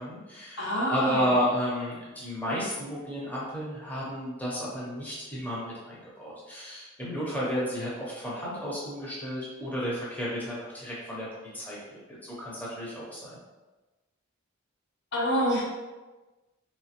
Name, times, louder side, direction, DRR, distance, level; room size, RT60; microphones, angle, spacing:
voice 1, 0.0-11.3 11.5-13.4, equal, 5° left, -7 dB, 0.7 m, -32 dB
voice 2, 0.6-1.2 15.1-15.6, equal, 55° left, -3 dB, 0.8 m, -26 dB
3.1 x 3.0 x 2.9 m, 1.2 s
head